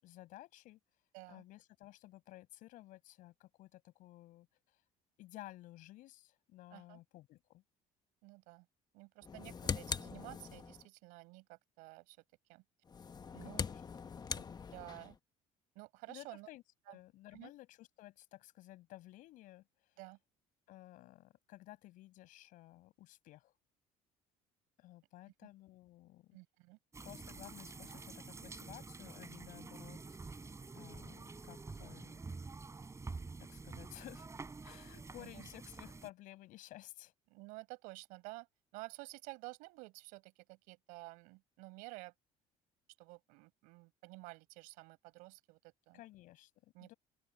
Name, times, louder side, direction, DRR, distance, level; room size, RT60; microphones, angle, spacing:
voice 1, 0.0-0.8 1.3-4.8 5.2-7.6 13.4-13.8 16.1-19.6 20.7-23.5 24.8-26.4 27.0-32.2 33.4-34.3 34.6-37.1 45.9-46.9, left 17 dB, 75° left, 6.8 m, -55 dB
voice 2, 1.1-1.4 6.7-7.0 8.2-8.7 8.9-12.2 12.5-12.6 13.3-13.6 14.3-14.4 14.7-15.2 15.7-16.5 16.9-17.0 17.3-17.5 20.0-20.2 26.3-26.8 35.2-35.5 37.3-38.5 38.7-42.1 43.0-45.6 45.9-46.0 46.7-46.9, right 25 dB, 90° right, 6.1 m, -52 dB
sound 1, 9.2-10.9 12.9-15.2, left 6 dB, 30° left, 1.2 m, -42 dB
sound 2, 26.9-36.1, right 3 dB, 20° right, 5.5 m, -48 dB
open air
cardioid pair, 100°, 14 cm